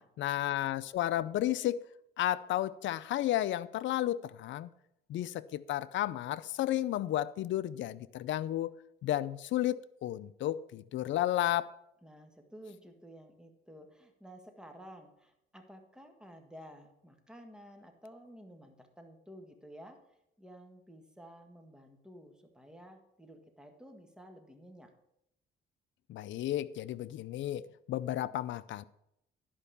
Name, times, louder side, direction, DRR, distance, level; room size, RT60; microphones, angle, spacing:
voice 1, 0.2-1.8 2.2-4.7 5.1-8.7 9.0-11.7 26.1-28.8, left 13 dB, 70° left, 0.5 m, -32 dB
voice 2, 12.0-24.9, equal, 5° right, 1.7 m, -53 dB
11.0 x 5.4 x 6.9 m
cardioid pair, 90°, 20 cm